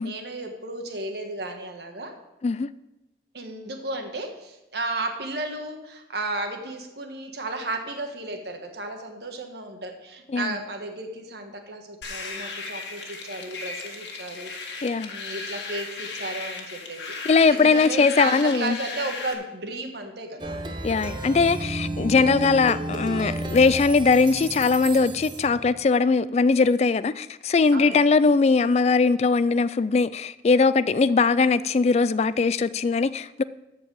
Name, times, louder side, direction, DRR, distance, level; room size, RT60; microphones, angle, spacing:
voice 1, 0.0-2.1 3.3-14.5 15.1-17.0 17.5-20.6 27.7-28.0, right 2 dB, 65° right, 1.4 m, -33 dB
sound 1, 12.0-19.3, left 4 dB, 75° left, 1.6 m, -36 dB
voice 2, 14.8-15.1 17.3-18.8 20.8-33.4, left 4 dB, 35° left, 0.3 m, -20 dB
Plucked string instrument, 20.4-25.7, right 2 dB, 25° right, 0.8 m, -32 dB
13.0 x 4.6 x 7.5 m
head